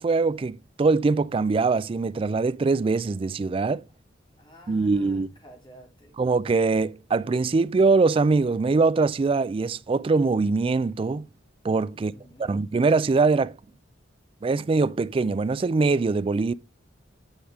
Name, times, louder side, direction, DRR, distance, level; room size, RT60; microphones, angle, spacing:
voice 1, 0.0-3.8 4.7-5.3 6.2-11.3 11.6-12.1 12.4-13.5 14.4-16.5, right 4 dB, 30° right, 0.3 m, -23 dB
voice 2, 4.4-6.2 11.9-12.6, equal, 25° left, 2.9 m, -51 dB
9.4 x 4.9 x 3.6 m
head